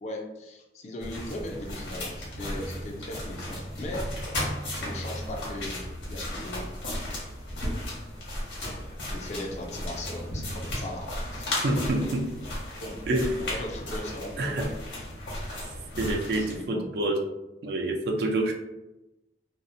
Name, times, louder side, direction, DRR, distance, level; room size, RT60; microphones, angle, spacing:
voice 1, 0.0-4.2 4.7-6.7 9.1-12.2 12.8-14.7 16.1-17.1, left 1 dB, 40° left, 2 dB, 0.3 m, -39 dB
sound 1, 1.0-16.6, left 1 dB, 85° left, 1.0 m, -35 dB
voice 2, 11.6-12.3 13.1-13.4 14.4-14.7 16.0-17.2 17.6-18.5, right 1 dB, 60° right, 2 dB, 0.4 m, -27 dB
2.7 x 2.0 x 2.5 m, 0.97 s
head